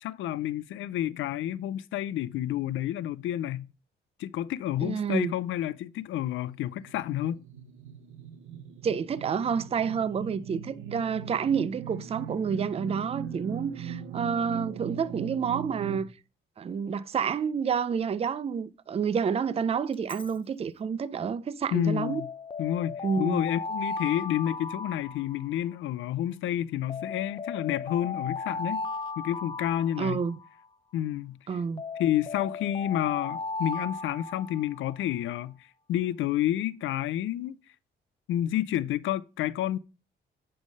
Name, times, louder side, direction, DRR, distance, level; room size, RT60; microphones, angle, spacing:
voice 1, 0.0-3.7 4.2-7.5 21.7-22.3 22.6-28.8 29.2-30.2 30.9-31.4 32.0-35.5 35.9-37.6 38.3-39.8, left 12 dB, 80° left, 0.5 m, -30 dB
voice 2, 4.8-5.3 8.8-16.1 16.6-22.2 23.0-23.4 30.0-30.4 31.5-31.8, right 6 dB, 30° right, 0.5 m, -29 dB
sound 1, 6.2-16.0, right 8 dB, 85° right, 0.8 m, -40 dB
Alarm, 19.9-20.3 22.0-25.8 26.9-30.7 31.8-35.0, left 4 dB, 25° left, 0.5 m, -36 dB
9.7 x 3.4 x 5.4 m
cardioid pair, 90°, 20 cm